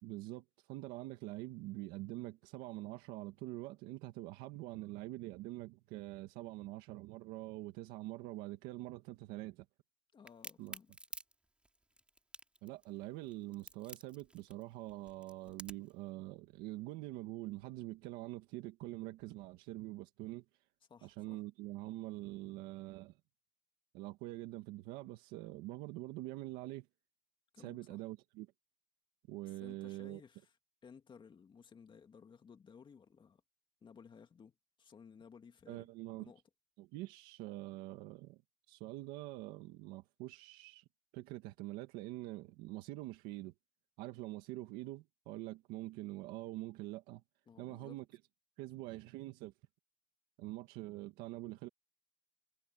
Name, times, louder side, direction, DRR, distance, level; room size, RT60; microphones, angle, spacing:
voice 1, 0.0-9.6 10.6-10.7 12.6-20.4 21.0-23.2 23.9-26.9 27.6-28.5 29.3-30.2 35.7-36.3 36.8-38.4 38.7-40.8 41.1-43.5 44.0-47.2 47.6-48.0 48.6-49.5 50.4-51.7, right 18 dB, 85° right, 1.8 m, -45 dB
voice 2, 10.1-10.9 20.9-21.4 27.5-28.0 29.5-30.5 30.8-33.4 33.8-35.9 36.1-36.4 47.5-48.0, left 6 dB, 30° left, 2.4 m, -58 dB
Crack, 10.3-16.0, right 1 dB, 5° right, 3.1 m, -51 dB
cardioid pair, 120°, 15 cm